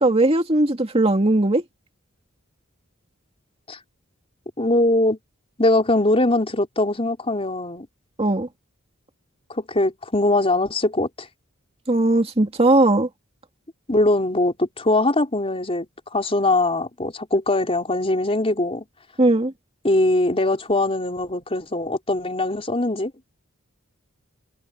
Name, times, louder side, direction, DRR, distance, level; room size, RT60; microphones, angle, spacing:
voice 1, 0.0-1.6 8.2-8.5 11.9-13.1 19.2-19.5, right 2 dB, 30° right, 2.5 m, -18 dB
voice 2, 4.6-5.2 5.6-7.9 9.5-11.3 13.9-18.8 19.8-23.1, left 2 dB, 30° left, 4.4 m, -21 dB
head